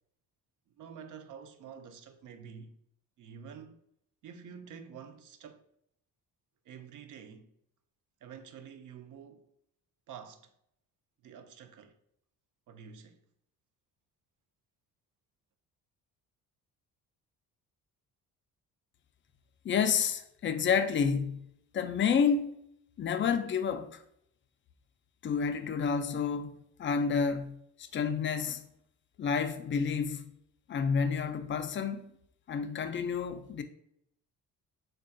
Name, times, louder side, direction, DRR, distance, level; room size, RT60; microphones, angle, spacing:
voice 1, 0.8-2.7 3.2-3.8 4.2-5.6 6.7-7.5 8.2-9.4 10.1-10.5 11.2-11.9 12.7-13.2, right 7 dB, 50° right, 0.5 m, -48 dB
voice 2, 19.6-21.4 21.7-22.5 23.0-24.0 25.2-27.6 27.9-28.6 29.2-30.3 30.7-32.1 32.5-33.6, left 6 dB, 30° left, 0.4 m, -29 dB
3.8 x 2.3 x 2.5 m
hypercardioid pair, 55°, 40 cm